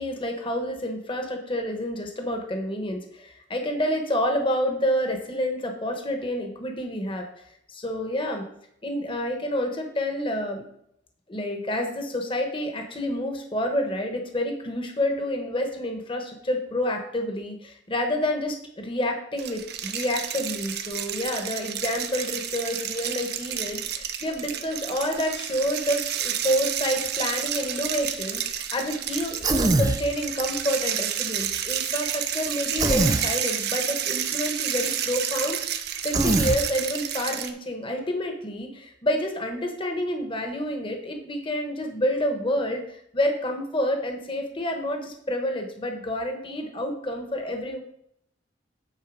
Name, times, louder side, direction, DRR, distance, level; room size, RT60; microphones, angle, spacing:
voice 1, 0.0-8.5 8.8-10.6 11.3-35.6 36.0-47.8, equal, 30° left, 4 dB, 1.1 m, -28 dB
sound 1, 19.4-37.5, right 9 dB, 60° right, 0.8 m, -30 dB
Human voice, 29.4-30.0 32.8-33.3 36.1-36.6, right 2 dB, 20° right, 0.5 m, -22 dB
9.3 x 4.4 x 6.2 m, 0.74 s
head